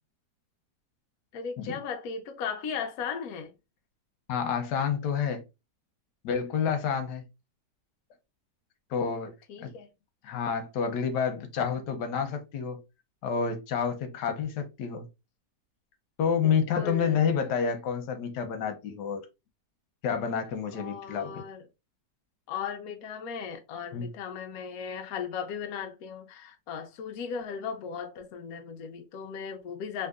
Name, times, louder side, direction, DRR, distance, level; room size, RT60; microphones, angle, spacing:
voice 1, 1.3-3.5 9.5-9.9 16.4-17.2 20.7-21.7 22.5-30.1, left 6 dB, 65° left, 1.0 m, -37 dB
voice 2, 4.3-5.4 6.2-7.2 8.9-9.3 9.6-9.7 10.2-12.8 13.2-15.1 16.2-19.2 20.0-21.4 23.9-24.1, left 7 dB, 90° left, 1.3 m, -29 dB
3.6 x 2.6 x 2.3 m
omnidirectional pair, 1.8 m